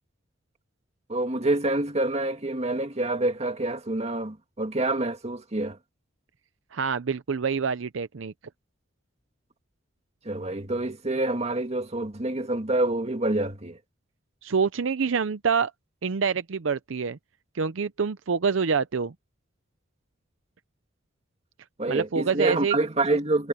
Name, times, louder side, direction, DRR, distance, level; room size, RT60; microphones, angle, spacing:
voice 1, 1.1-5.8 10.2-13.8 21.8-23.5, right 2 dB, 35° right, 2.1 m, -27 dB
voice 2, 6.7-8.3 14.4-15.7 16.0-17.2 17.5-19.1 21.9-22.8, right 5 dB, 70° right, 0.6 m, -26 dB
head